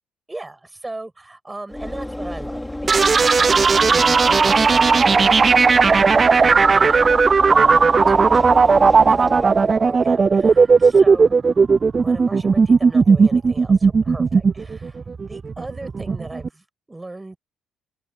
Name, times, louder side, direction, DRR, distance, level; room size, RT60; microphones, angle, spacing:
voice 1, 0.3-11.4 12.0-17.4, right 2 dB, 15° right, 6.6 m, -38 dB
Train / Engine / Alarm, 1.7-9.9, left 1 dB, 10° left, 4.8 m, -31 dB
sound 1, 2.9-16.5, right 5 dB, 35° right, 0.4 m, -15 dB
open air
cardioid pair, 85°, 0 cm